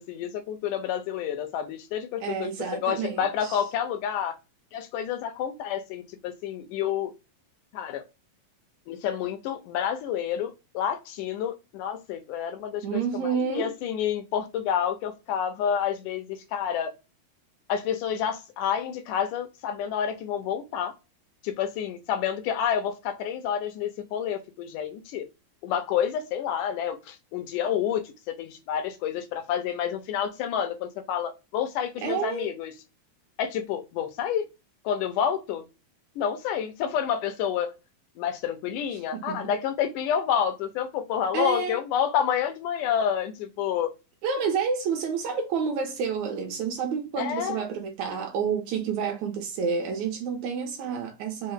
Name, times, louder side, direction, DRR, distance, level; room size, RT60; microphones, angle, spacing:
voice 1, 0.0-4.4 4.7-7.1 7.7-8.0 8.9-16.9 17.7-20.9 21.4-25.3 25.6-32.7 33.4-34.4 34.9-35.6 36.2-37.7 38.2-43.9 47.2-47.7, left 9 dB, 85° left, 2.1 m, -29 dB
voice 2, 2.2-3.6 12.8-13.7 32.0-32.5 38.9-39.5 41.3-41.8 44.2-51.5, right 6 dB, 75° right, 1.8 m, -29 dB
5.3 x 2.0 x 3.5 m
omnidirectional pair, 3.7 m